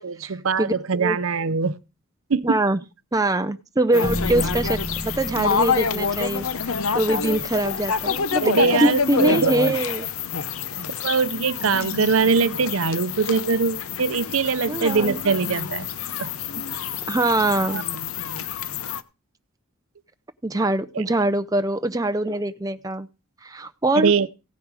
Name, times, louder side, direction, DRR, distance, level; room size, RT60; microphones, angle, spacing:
voice 1, 0.0-1.8 2.3-2.6 8.4-9.8 11.0-15.9 16.2-16.3 17.7-17.8 20.9-21.0 24.0-24.3, right 5 dB, 65° right, 0.6 m, -22 dB
voice 2, 2.4-2.8 3.1-6.5 6.9-8.5 8.8-10.1 14.7-15.2 17.1-17.8 20.4-23.1 23.4-24.3, right 1 dB, 15° right, 0.5 m, -23 dB
sound 1, 3.9-19.0, left 6 dB, 70° left, 0.8 m, -27 dB
sound 2, 4.0-8.2, equal, 10° left, 0.8 m, -33 dB
16.5 x 7.1 x 4.8 m
head